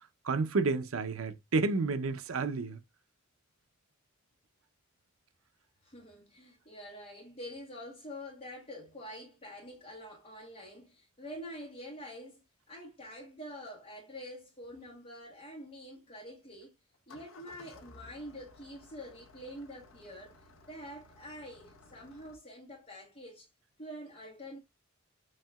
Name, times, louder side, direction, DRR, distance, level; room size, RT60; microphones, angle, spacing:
voice 1, 0.2-2.8, right 3 dB, 80° right, 0.6 m, -30 dB
voice 2, 5.8-16.7 17.1-23.5 23.8-24.6, equal, 30° left, 1.4 m, -46 dB
Engine starting, 16.9-22.4, left 3 dB, 75° left, 0.8 m, -57 dB
7.4 x 2.8 x 2.2 m
head